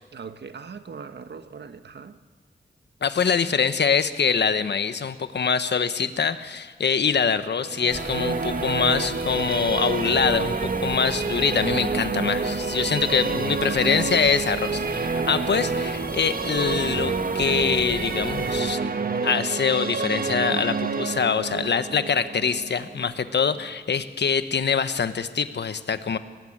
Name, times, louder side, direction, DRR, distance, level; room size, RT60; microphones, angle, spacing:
voice 1, 0.1-2.2 13.0-13.8, right 5 dB, 90° right, 10 dB, 1.5 m, -41 dB
voice 2, 3.0-18.8 19.2-26.2, left 6 dB, 85° left, 11 dB, 1.4 m, -24 dB
sound 1, 7.6-23.7, right 4 dB, 60° right, 1.4 m, -28 dB
sound 2, 7.9-18.6, left 1 dB, 10° left, 3.4 m, -38 dB
29.5 x 20.0 x 8.9 m, 1.4 s
wide cardioid pair, 105°, 17 cm